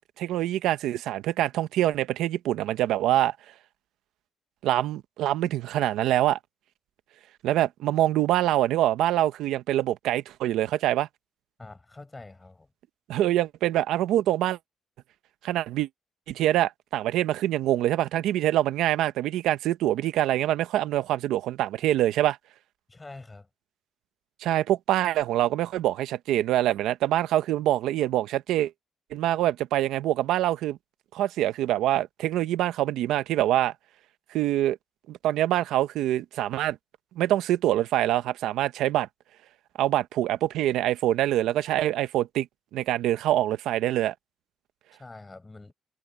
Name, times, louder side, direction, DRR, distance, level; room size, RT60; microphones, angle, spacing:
voice 1, 0.2-3.3 4.6-6.4 7.4-11.1 13.1-14.6 15.4-15.9 16.3-22.4 24.4-28.7 29.1-30.8 31.1-33.7 34.3-34.8 35.1-36.8 37.2-39.1 39.8-42.5 42.7-44.1, right 13 dB, 90° right, 0.9 m, -25 dB
voice 2, 11.6-12.7 22.9-23.5 44.9-45.7, left 2 dB, 20° left, 7.2 m, -45 dB
cardioid pair, 90°, 0 cm